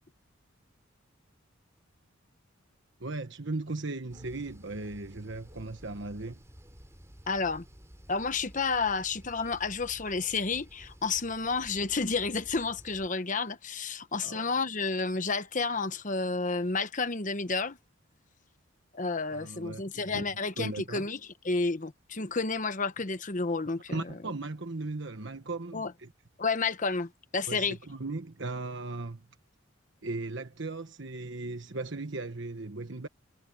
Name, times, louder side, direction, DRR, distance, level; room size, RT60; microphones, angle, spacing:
voice 1, 3.0-6.4 14.2-14.5 19.3-20.3 20.6-21.1 23.9-26.1 27.5-29.3 30.0-33.1, right 2 dB, 60° right, 1.3 m, -37 dB
sound 1, 4.1-13.1, equal, 15° right, 3.8 m, -52 dB
voice 2, 7.3-7.6 8.1-17.8 18.9-21.2 21.4-24.1 25.7-25.9 26.4-27.8, left 4 dB, 40° left, 1.0 m, -31 dB
head